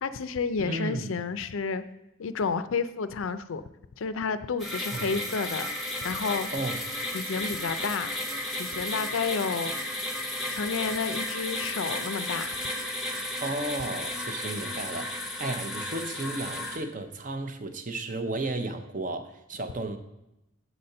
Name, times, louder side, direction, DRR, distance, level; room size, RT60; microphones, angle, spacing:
voice 1, 0.0-1.8 2.2-3.7 4.0-5.7 6.0-6.5 7.1-8.1 8.6-9.7 10.5-12.6, left 5 dB, 70° left, 13 dB, 0.4 m, -30 dB
voice 2, 0.6-1.1 4.9-5.1 6.5-6.8 13.4-20.0, right 2 dB, 40° right, 8 dB, 0.7 m, -33 dB
sound 1, 4.6-16.8, left 1 dB, ahead, 0.9 m, -33 dB
8.0 x 4.2 x 6.5 m, 0.91 s
head